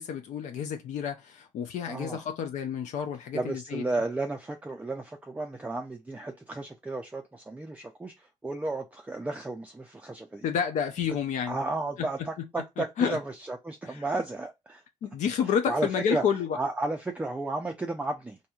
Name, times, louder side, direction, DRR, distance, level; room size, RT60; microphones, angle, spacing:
voice 1, 0.0-3.8 10.4-11.6 12.8-13.2 13.9-14.0 15.0-16.6, left 7 dB, 70° left, 0.4 m, -30 dB
voice 2, 1.8-2.2 3.3-10.4 11.4-14.8 15.6-16.2 16.5-18.4, right 2 dB, 10° right, 0.4 m, -33 dB
2.9 x 2.6 x 2.3 m
cardioid pair, 95°, 13 cm